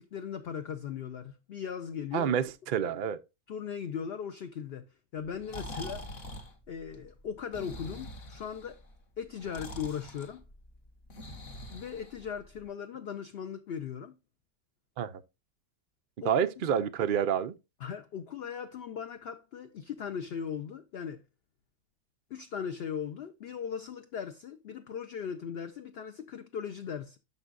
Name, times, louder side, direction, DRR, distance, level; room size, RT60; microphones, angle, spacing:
voice 1, 0.0-2.3 3.5-4.9 5.1-6.0 6.7-8.8 9.2-10.4 11.7-14.1 16.2-16.3 16.7-16.8 17.8-21.2 22.3-27.2, left 7 dB, 60° left, 0.7 m, -38 dB
voice 2, 2.1-3.2 15.0-15.2 16.2-17.5, right 8 dB, 75° right, 0.4 m, -28 dB
Breathing, 5.2-12.6, left 1 dB, 45° left, 1.3 m, -45 dB
11.0 x 6.0 x 2.5 m
omnidirectional pair, 1.6 m